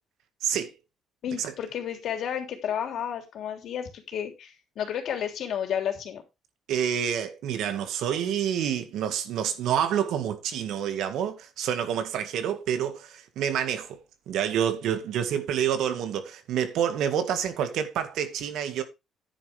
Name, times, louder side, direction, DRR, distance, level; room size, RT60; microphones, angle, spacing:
voice 1, 0.4-0.7 1.4-1.5 6.7-14.0 14.3-18.8, right 9 dB, 70° right, 1.8 m, -28 dB
voice 2, 1.2-6.2, left 9 dB, 60° left, 3.2 m, -32 dB
10.0 x 9.9 x 3.4 m
cardioid pair, 130°, 0 cm